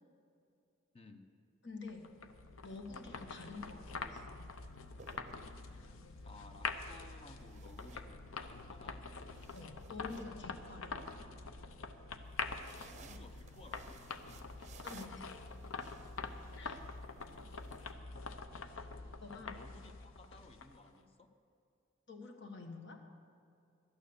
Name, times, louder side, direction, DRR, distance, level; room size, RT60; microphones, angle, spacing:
voice 1, 0.9-1.3 6.2-9.0 12.9-14.0 19.5-21.3, left 2 dB, 30° left, 6 dB, 0.8 m, -57 dB
voice 2, 1.6-2.1 2.6-4.2 9.5-11.0 14.8-15.1 16.6-16.8 19.2-19.6 22.1-23.0, left 3 dB, 60° left, 3 dB, 1.5 m, -48 dB
sound 1, 1.9-20.9, left 4 dB, 85° left, 0.7 m, -45 dB
sound 2, 3.6-3.8 4.8-5.9 7.4-8.6 9.0-11.1 12.2-17.9, right 5 dB, 35° right, 0.6 m, -60 dB
12.5 x 9.2 x 6.8 m, 2.5 s
head